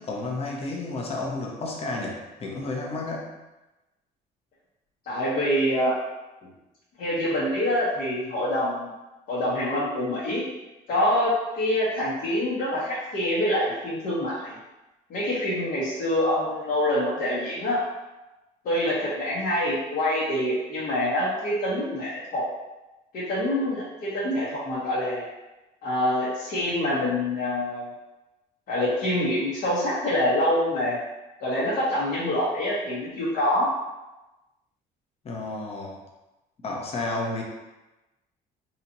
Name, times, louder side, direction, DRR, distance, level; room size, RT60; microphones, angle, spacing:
voice 1, 0.0-3.3 6.4-6.5 35.2-36.0 36.6-37.4, left 2 dB, 35° left, -1 dB, 0.8 m, -31 dB
voice 2, 5.0-5.9 7.0-8.9 9.3-10.4 10.9-14.6 15.1-17.8 18.6-22.4 23.1-25.2 25.8-27.9 28.7-31.0 31.4-33.7, left 1 dB, 65° left, -9 dB, 1.2 m, -25 dB
4.0 x 2.9 x 2.8 m, 1.0 s
cardioid pair, 110°, 17 cm